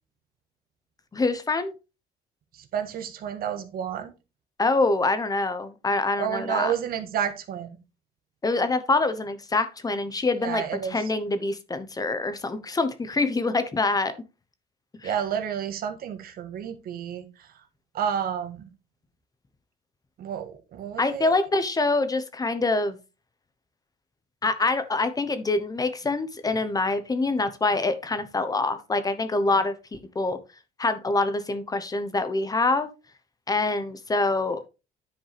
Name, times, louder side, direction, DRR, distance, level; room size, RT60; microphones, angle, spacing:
voice 1, 1.1-1.7 4.6-6.7 8.4-14.1 15.0-15.1 21.0-23.0 24.4-30.4 30.8-32.9 33.5-34.7, left 3 dB, 20° left, 0.9 m, -25 dB
voice 2, 2.7-4.1 6.2-7.8 10.4-11.0 15.0-17.3 17.9-18.7 20.2-21.4, right 8 dB, 60° right, 1.4 m, -30 dB
10.0 x 5.2 x 3.4 m
cardioid pair, 110°, 17 cm